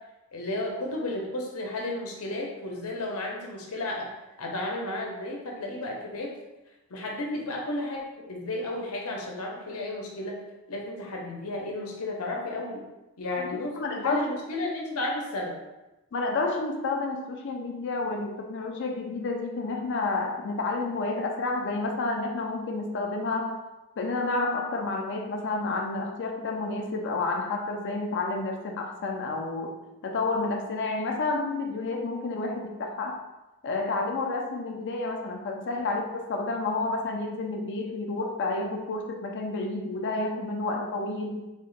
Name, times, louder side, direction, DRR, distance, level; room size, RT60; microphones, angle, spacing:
voice 1, 0.3-4.1 4.4-6.3 6.9-10.4 10.7-12.8 13.2-15.6, left 2 dB, 75° left, -1 dB, 0.8 m, -33 dB
voice 2, 13.4-14.4 16.1-23.6 24.0-33.2 33.6-41.5, left 3 dB, 55° left, 2 dB, 0.4 m, -30 dB
3.6 x 2.1 x 3.8 m, 1.0 s
head